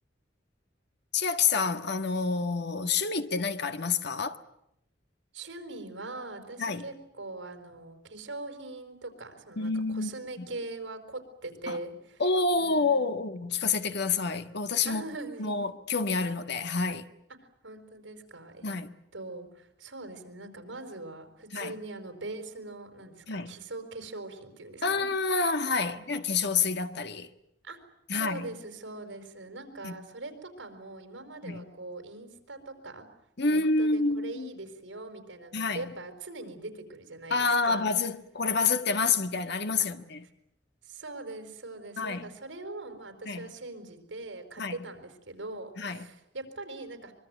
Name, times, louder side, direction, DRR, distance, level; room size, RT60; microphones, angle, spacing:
voice 1, 1.1-4.4 6.6-6.8 9.6-10.1 10.4-10.5 11.7-11.8 12.2-15.0 15.4-17.1 18.6-18.9 21.5-21.7 23.3-23.5 24.8-27.3 28.1-28.5 29.8-29.9 31.4-31.6 33.4-34.5 35.5-35.8 37.3-40.2 42.0-42.2 43.2-43.5 44.6-44.7 45.8-46.1, left 4 dB, 65° left, 1.6 m, -28 dB
voice 2, 5.3-12.2 12.6-13.1 14.8-15.6 17.6-18.8 19.1-25.1 25.9-26.1 27.6-27.8 28.1-33.0 33.5-37.9 39.8-39.9 40.8-47.1, right 2 dB, 75° right, 5.1 m, -42 dB
24.5 x 23.0 x 9.3 m
head